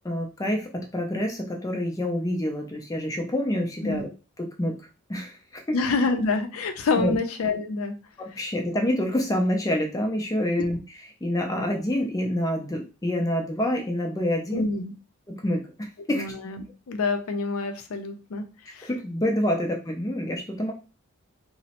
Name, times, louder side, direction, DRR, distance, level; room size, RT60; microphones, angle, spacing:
voice 1, 0.0-4.1 4.4-4.8 5.1-5.8 7.0-7.2 8.2-10.8 11.2-14.6 15.3-16.2 18.8-20.7, left 1 dB, 15° left, 1 dB, 0.4 m, -27 dB
voice 2, 5.7-8.0 14.5-14.9 16.1-18.9, left 3 dB, 75° left, 7 dB, 0.4 m, -27 dB
2.9 x 2.0 x 2.8 m, 0.33 s
head